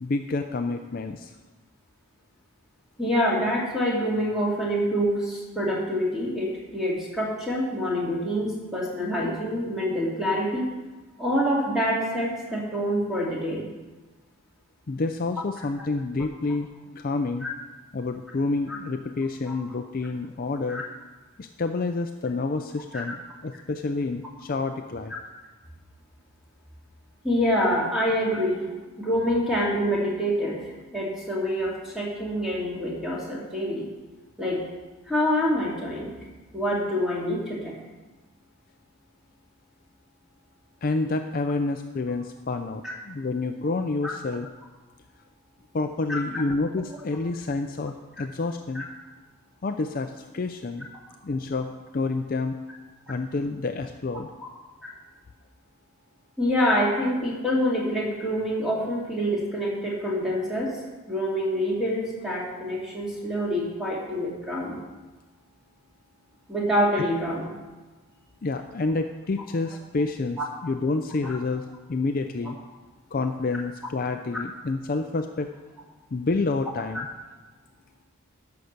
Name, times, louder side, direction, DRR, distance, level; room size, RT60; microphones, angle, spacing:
voice 1, 0.0-1.3 14.9-16.7 16.9-17.5 17.9-20.8 21.4-23.2 23.4-25.1 40.8-44.5 45.7-48.9 49.6-50.9 51.2-52.6 53.1-54.3 68.4-72.6 73.1-75.5 76.1-77.1, left 3 dB, 40° left, 6 dB, 0.4 m, -28 dB
voice 2, 3.0-10.7 11.2-13.6 17.4-17.5 18.7-18.8 19.5-19.6 20.7-20.8 22.9-23.0 27.2-28.7 29.0-33.9 34.4-34.6 35.1-36.1 36.5-37.8 42.8-42.9 44.0-44.1 46.1-46.2 48.7-48.8 54.8-54.9 56.4-60.7 61.1-64.8 66.5-67.5 70.4-70.5, equal, ahead, -5 dB, 2.5 m, -26 dB
11.5 x 5.8 x 6.7 m, 1.2 s
head